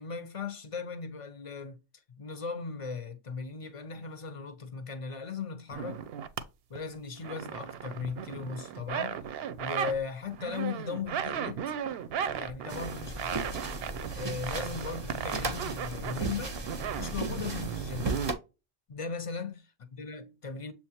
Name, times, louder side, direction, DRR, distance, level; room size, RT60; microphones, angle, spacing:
voice 1, 0.0-1.8 2.2-6.0 6.7-9.2 9.6-11.6 12.3-13.6 14.1-16.6 17.0-18.1 18.9-20.7, left 5 dB, 35° left, 0.6 m, -38 dB
sound 1, 5.7-6.4 6.8-10.0 10.3-18.3, right 8 dB, 65° right, 0.7 m, -36 dB
sound 2, 12.7-18.3, right 2 dB, 30° right, 0.5 m, -36 dB
7.2 x 2.5 x 2.8 m
omnidirectional pair, 1.2 m